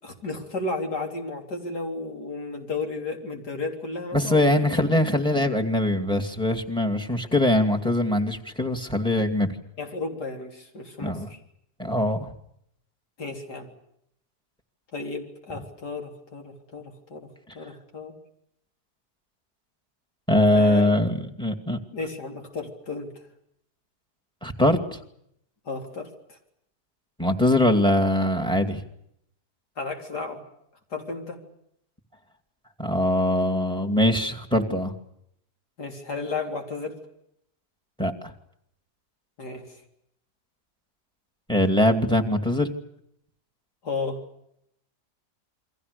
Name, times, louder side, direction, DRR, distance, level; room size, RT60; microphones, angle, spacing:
voice 1, 0.0-4.6 9.8-11.4 13.2-13.7 14.9-17.3 17.5-18.2 20.5-20.9 21.9-23.1 25.7-26.4 29.8-30.4 30.9-31.4 35.8-37.0 39.4-39.7 43.8-44.2, left 3 dB, 80° left, 3 dB, 4.2 m, -33 dB
voice 2, 4.1-9.5 11.0-11.3 11.8-12.2 20.3-21.8 24.4-25.0 27.2-28.8 32.8-34.9 38.0-38.1 41.5-42.7, left 1 dB, 5° left, 7 dB, 2.3 m, -22 dB
29.0 x 23.5 x 6.8 m, 0.75 s
omnidirectional pair, 1.7 m